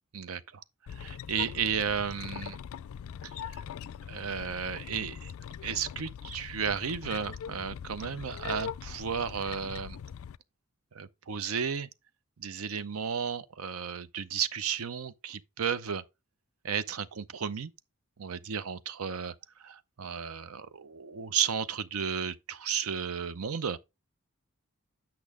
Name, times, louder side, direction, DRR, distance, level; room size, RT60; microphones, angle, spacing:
voice 1, 0.1-0.6 1.0-2.6 3.5-3.6 4.1-5.3 5.6-10.0 10.9-11.9 12.4-16.0 16.6-17.7 18.2-19.3 19.6-23.8, right 7 dB, 85° right, 0.6 m, -33 dB
sound 1, 0.9-10.4, left 8 dB, 70° left, 0.3 m, -42 dB
8.4 x 5.9 x 3.6 m
head